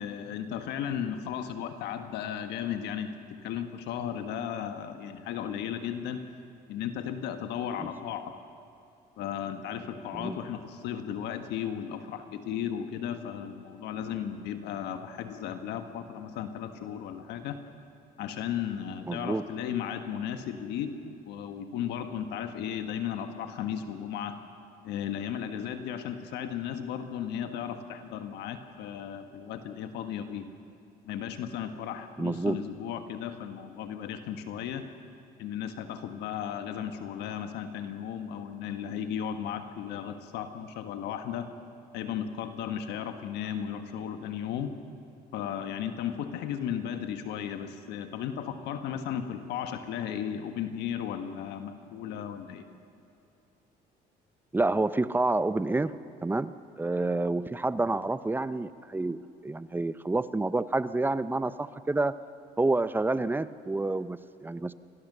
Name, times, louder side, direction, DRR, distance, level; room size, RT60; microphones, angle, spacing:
voice 1, 0.0-3.1 3.4-6.2 6.7-8.3 9.2-17.6 18.2-24.4 24.8-30.5 31.0-34.9 35.4-41.5 41.9-44.7 45.3-52.6, left 9 dB, 85° left, 8 dB, 1.4 m, -35 dB
voice 2, 19.1-19.5 32.2-32.6 54.5-62.2 62.6-64.7, right 2 dB, 10° right, 14 dB, 0.6 m, -29 dB
25.0 x 18.5 x 6.8 m, 2.7 s
cardioid pair, 110°, 17 cm